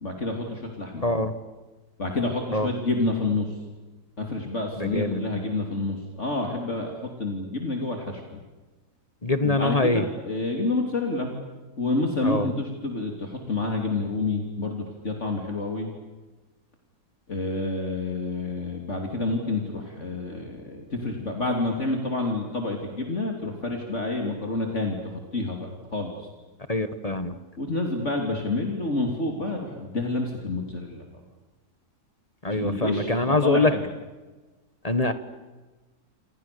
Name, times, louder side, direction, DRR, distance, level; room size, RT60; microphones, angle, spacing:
voice 1, 0.0-1.1 2.0-3.5 4.2-8.4 9.4-11.4 11.8-15.9 17.3-26.3 27.6-31.0 32.4-33.9, left 2 dB, 45° left, 2 dB, 3.5 m, -29 dB
voice 2, 1.0-1.3 2.5-2.7 4.8-5.4 9.2-10.0 12.2-12.5 26.7-27.3 32.4-33.7 34.8-35.1, left 2 dB, 25° left, 11 dB, 1.5 m, -24 dB
28.5 x 28.0 x 7.0 m, 1.2 s
omnidirectional pair, 1.7 m